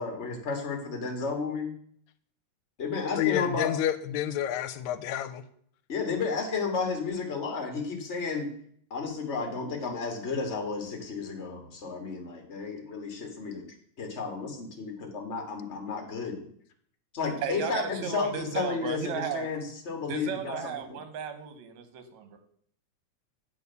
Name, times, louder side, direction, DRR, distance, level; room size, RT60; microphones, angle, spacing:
voice 1, 0.0-1.7 2.8-3.7 5.9-8.5 8.9-13.6 14.0-16.4 17.1-21.0, left 4 dB, 35° left, 1.1 m, -32 dB
voice 2, 3.2-5.4, left 11 dB, 80° left, 1.9 m, -29 dB
voice 3, 17.4-19.5 20.1-22.4, right 8 dB, 75° right, 2.3 m, -35 dB
8.6 x 4.4 x 6.8 m
omnidirectional pair, 3.3 m